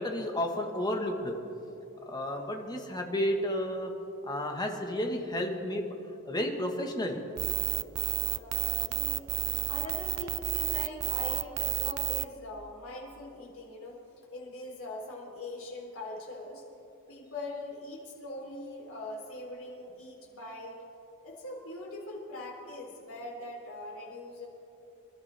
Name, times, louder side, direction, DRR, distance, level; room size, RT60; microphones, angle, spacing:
voice 1, 0.0-1.3 2.1-3.9 4.2-5.8 6.2-7.2, left 1 dB, 20° left, 2 dB, 1.4 m, -32 dB
sound 1, 7.4-12.2, right 15 dB, 80° right, 0.4 m, -31 dB
voice 2, 8.3-9.3 9.7-14.0 14.3-16.6 17.1-20.8 21.2-24.5, left 2 dB, 65° left, -2 dB, 3.5 m, -42 dB
26.5 x 12.0 x 3.4 m, 2.9 s
head